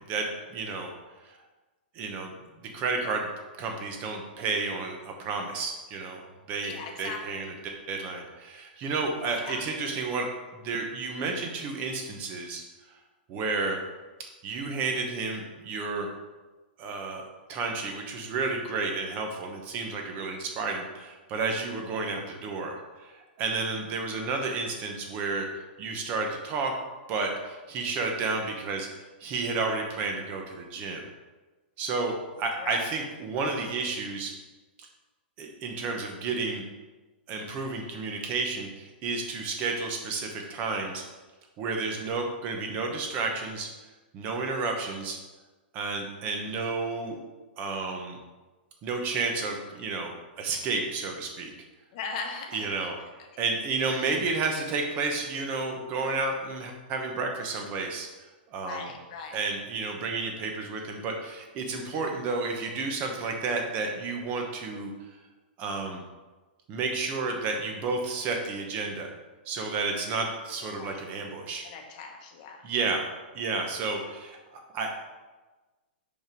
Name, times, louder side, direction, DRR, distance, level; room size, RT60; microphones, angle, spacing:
voice 1, 0.1-0.9 1.2-1.4 1.9-3.3 3.6-12.6 13.3-13.8 14.4-16.1 16.8-17.2 17.5-26.7 27.1-31.1 31.8-34.3 34.8-34.9 35.4-36.6 37.3-41.0 41.6-43.7 44.1-45.2 45.7-47.2 47.6-48.2 48.8-51.5 52.5-53.0 53.4-58.1 58.5-58.9 59.3-64.9 65.6-66.0 66.7-69.1 69.4-71.6 72.6-73.1 73.3-75.0, right 4 dB, 25° right, 3 dB, 1.0 m, -31 dB
voice 2, 6.6-7.2 9.4-9.6 32.6-32.8 51.9-52.7 54.0-54.1 58.6-59.4 70.8-71.0 71.6-72.6, left 5 dB, 40° left, 3 dB, 1.0 m, -38 dB
5.4 x 5.1 x 4.6 m, 1.2 s
hypercardioid pair, 160°, 6 cm